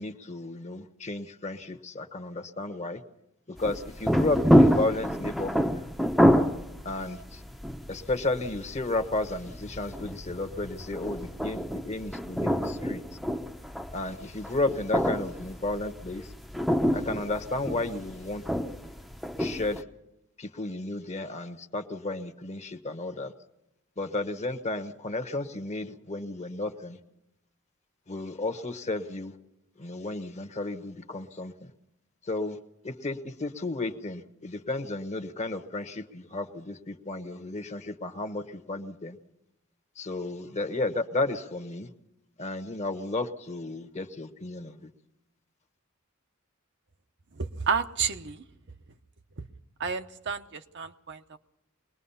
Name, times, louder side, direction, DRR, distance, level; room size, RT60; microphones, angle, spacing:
voice 1, 0.0-3.0 3.5-5.8 6.8-7.4 7.9-13.0 13.9-16.3 16.9-18.8 19.4-19.8 20.4-23.3 24.0-27.0 28.1-29.3 29.8-31.7 32.2-32.6 32.8-39.2 40.0-41.9 42.4-44.9, left 2 dB, 35° left, 9 dB, 1.1 m, -33 dB
sound 1, 3.6-19.8, equal, ahead, 0.7 m, -27 dB
voice 2, 47.4-48.4 49.8-51.4, right 6 dB, 60° right, 7 dB, 0.9 m, -31 dB
23.5 x 20.0 x 5.6 m, 0.93 s
head